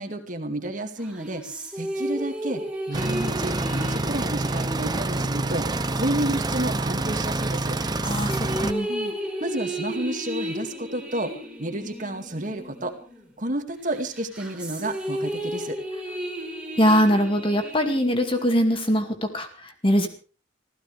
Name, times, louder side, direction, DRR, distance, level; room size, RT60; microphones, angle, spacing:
voice 1, 0.0-1.4 1.8-2.6 2.9-5.7 5.9-7.8 8.9-9.1 9.4-11.3 11.6-12.9 13.4-15.8, right 1 dB, 40° right, 5 dB, 2.2 m, -30 dB
sound 1, 1.0-6.9 7.5-13.5 13.9-19.0, equal, 5° right, 4.1 m, -34 dB
sound 2, 2.9-8.7, right 2 dB, 20° right, 0.8 m, -27 dB
voice 2, 8.0-8.9 16.8-20.1, equal, 25° left, 6 dB, 2.3 m, -22 dB
26.0 x 15.5 x 3.4 m, 0.36 s
head